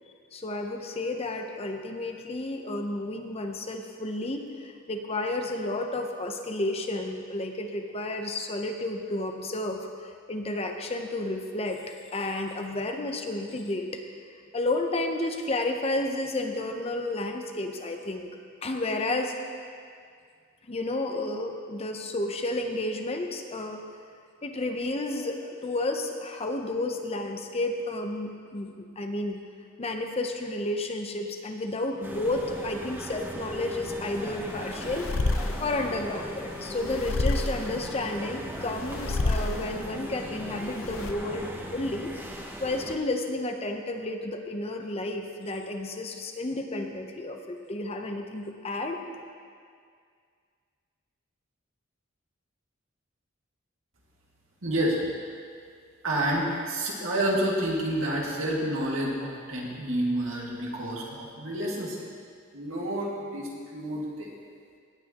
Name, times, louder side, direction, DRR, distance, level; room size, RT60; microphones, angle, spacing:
voice 1, 0.3-9.9 10.3-14.0 14.5-18.3 18.6-19.4 20.7-23.8 24.4-29.4 29.8-35.1 35.6-42.1 42.6-49.0, left 2 dB, 30° left, 4 dB, 0.7 m, -31 dB
sound 1, 32.0-43.0, equal, 10° right, 0.8 m, -39 dB
sound 2, 34.2-41.1, left 2 dB, 80° left, 0.6 m, -31 dB
voice 2, 54.6-55.0 56.0-62.0 62.5-64.3, right 1 dB, 80° right, -3 dB, 2.1 m, -29 dB
18.0 x 8.8 x 3.0 m, 2.1 s
head